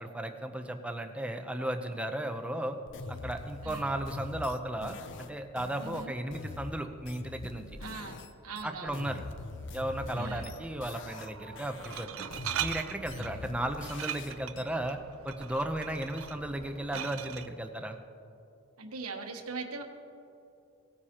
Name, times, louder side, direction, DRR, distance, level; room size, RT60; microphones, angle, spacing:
voice 1, 0.0-2.8 3.1-7.7 8.6-9.2 9.7-12.3 12.6-15.0 15.2-18.0, right 1 dB, 5° right, 6 dB, 0.6 m, -35 dB
sound 1, 2.9-8.3 8.6-11.3 11.6-14.6, left 3 dB, 55° left, 0.5 m, -43 dB
voice 2, 5.8-6.1 7.8-9.1 10.1-10.5 13.2-13.5 18.8-19.8, right 4 dB, 85° right, 4 dB, 1.1 m, -41 dB
Glass, 9.7-17.5, right 9 dB, 70° right, 0.5 m, -41 dB
18.0 x 9.6 x 2.9 m, 2.8 s
head